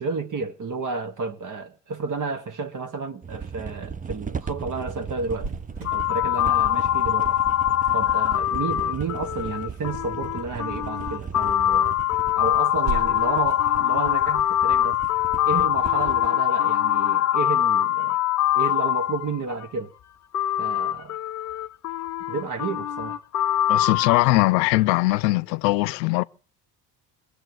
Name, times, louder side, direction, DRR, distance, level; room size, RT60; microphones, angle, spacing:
voice 1, 0.0-5.6 5.9-7.4 7.9-12.0 12.3-15.0 15.4-18.2 18.5-19.9 20.6-21.1 22.3-23.2, right 4 dB, 40° right, 1.7 m, -31 dB
sound 1, 3.2-16.3, right 6 dB, 15° right, 0.7 m, -37 dB
Cricket, 5.3-16.7, right 3 dB, 75° right, 5.6 m, -41 dB
sound 2, 5.8-19.7 20.3-24.2, left 12 dB, 35° left, 0.7 m, -23 dB
voice 2, 23.7-26.2, left 19 dB, 85° left, 0.7 m, -21 dB
20.5 x 6.9 x 9.3 m
hypercardioid pair, 75°, 49 cm